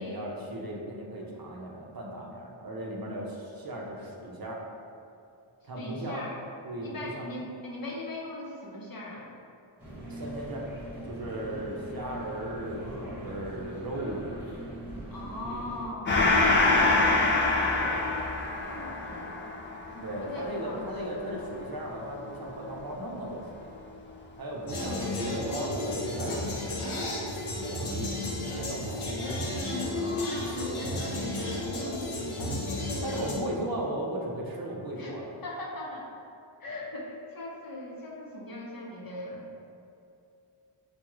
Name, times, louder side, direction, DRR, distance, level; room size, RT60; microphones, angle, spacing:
voice 1, 0.0-4.6 5.6-6.2 6.6-7.3 10.1-10.7 11.0-14.4 16.4-16.6 17.7-18.3 20.0-23.7 24.4-26.8 27.5-29.0 33.0-35.3, right 1 dB, 45° right, -2 dB, 0.7 m, -36 dB
voice 2, 5.8-6.4 6.8-9.3 15.1-17.3 18.6-19.5 19.9-21.2 29.9-30.9 31.3-33.3 35.0-36.1 36.6-39.7, left 1 dB, 45° left, -3 dB, 0.8 m, -40 dB
sound 1, 9.8-15.9, right 1 dB, 5° right, 1.3 m, -41 dB
Gong, 16.0-23.0, left 2 dB, 25° left, 0.3 m, -26 dB
sound 2, 24.7-33.3, left 1 dB, 85° left, 1.0 m, -32 dB
6.7 x 2.3 x 3.0 m, 2.6 s
wide cardioid pair, 125°, 49 cm